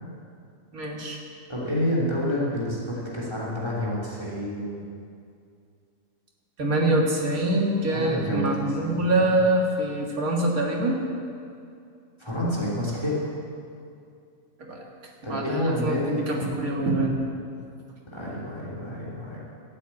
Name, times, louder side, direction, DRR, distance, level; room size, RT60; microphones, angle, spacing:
voice 1, 0.7-1.2 6.6-11.0 14.6-14.9 15.2-17.2, right 1 dB, 90° right, -1 dB, 2.4 m, -25 dB
voice 2, 1.5-4.8 7.9-9.4 12.2-13.3 15.2-16.3 18.1-19.4, equal, 20° left, -5 dB, 3.1 m, -29 dB
12.0 x 9.4 x 8.5 m, 2.4 s
omnidirectional pair, 1.5 m